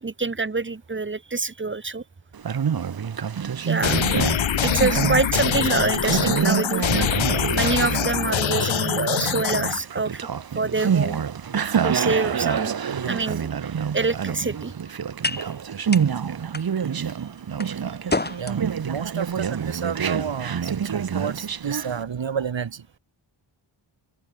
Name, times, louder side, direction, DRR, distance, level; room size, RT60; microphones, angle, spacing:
voice 1, 0.0-2.0 3.6-4.0 4.6-7.2 7.5-10.2 10.6-11.2 11.8-12.8 13.1-13.5 13.9-14.7, right 3 dB, 25° right, 1.7 m, -26 dB
Conversation, 2.3-22.0, right 7 dB, 50° right, 1.1 m, -27 dB
sound 1, 3.8-9.8, left 9 dB, 75° left, 1.1 m, -24 dB
voice 2, 12.9-13.2 17.0-17.1 18.4-22.8, right 7 dB, 70° right, 2.5 m, -31 dB
sound 2, 13.7-22.1, left 2 dB, 20° left, 3.2 m, -35 dB
wide cardioid pair, 155°, 47 cm